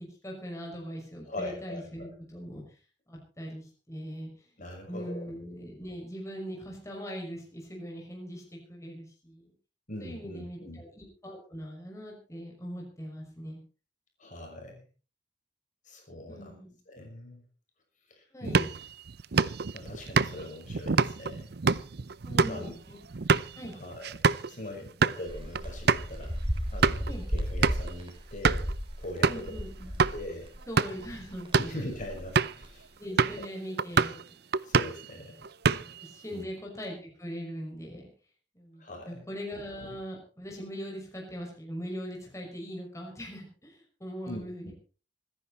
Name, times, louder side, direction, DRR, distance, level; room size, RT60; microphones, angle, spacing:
voice 1, 0.2-2.6 3.1-4.3 4.9-8.4 8.7-9.5 10.0-13.6 16.3-16.7 18.3-18.7 22.2-23.0 23.6-23.7 27.1-27.3 29.3-29.9 30.7-31.7 33.0-34.2 35.7-38.1 38.5-44.7, equal, 15° left, -1 dB, 6.1 m, -41 dB
voice 2, 1.2-2.1 4.6-5.3 9.9-10.8 14.2-14.9 15.8-16.6 16.9-17.4 18.1-18.6 19.7-21.5 22.5-22.7 23.7-24.1 24.5-26.4 26.7-28.7 29.0-29.5 30.1-30.5 31.5-33.5 34.6-35.4 36.3-36.5 38.8-39.3 44.3-44.7, left 1 dB, 45° left, 1 dB, 6.2 m, -41 dB
sound 1, 18.4-24.5 24.9-25.2 25.6-25.7 25.9-26.1 26.6-27.1 27.6-27.9 28.4-28.7 29.2-29.5 30.0-30.2 30.6-31.1 31.4-31.8 32.4-32.6 33.2-33.5 33.8-34.2 34.5-35.1 35.4-36.1, right 5 dB, 60° right, 0.7 m, -26 dB
sound 2, 25.3-30.7 31.0-32.7, equal, 30° right, 3.8 m, -34 dB
25.5 x 10.5 x 4.3 m, 0.37 s
head